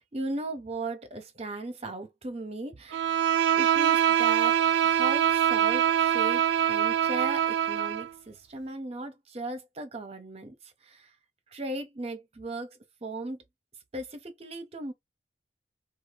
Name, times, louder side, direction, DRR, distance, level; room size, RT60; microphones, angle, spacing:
voice 1, 0.0-3.1 3.6-11.1 11.5-13.4 13.9-14.9, right 2 dB, 35° right, 0.7 m, -37 dB
Bowed string instrument, 2.9-8.1, right 9 dB, 75° right, 0.4 m, -24 dB
2.7 x 2.3 x 3.2 m
head